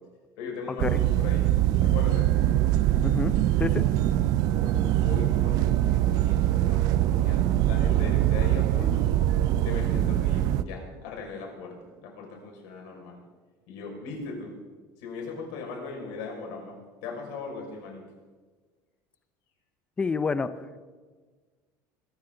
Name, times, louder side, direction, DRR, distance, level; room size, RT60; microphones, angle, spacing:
voice 1, 0.4-1.5 1.8-2.4 4.5-9.2 9.6-13.2 13.7-14.6 15.0-18.0, left 4 dB, 75° left, 0 dB, 5.7 m, -39 dB
sound 1, 0.8-10.6, right 13 dB, 50° right, 0.6 m, -23 dB
voice 2, 20.0-20.5, left 4 dB, 15° left, 12 dB, 0.6 m, -27 dB
23.5 x 14.0 x 3.9 m, 1.4 s
cardioid pair, 175°, 8 cm